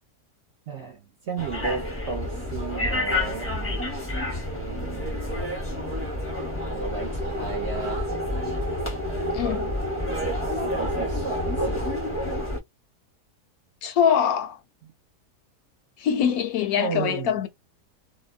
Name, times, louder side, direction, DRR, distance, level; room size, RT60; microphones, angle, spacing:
voice 1, 0.7-3.5 4.5-5.4 6.7-8.1 10.5-12.0 14.8-14.9 16.7-17.4, right 5 dB, 60° right, 0.7 m, -34 dB
sound 1, 1.4-12.6, left 1 dB, 15° left, 0.6 m, -29 dB
voice 2, 9.3-9.7 13.8-14.6 16.0-17.5, left 8 dB, 75° left, 1.0 m, -23 dB
2.7 x 2.1 x 2.3 m
omnidirectional pair, 1.7 m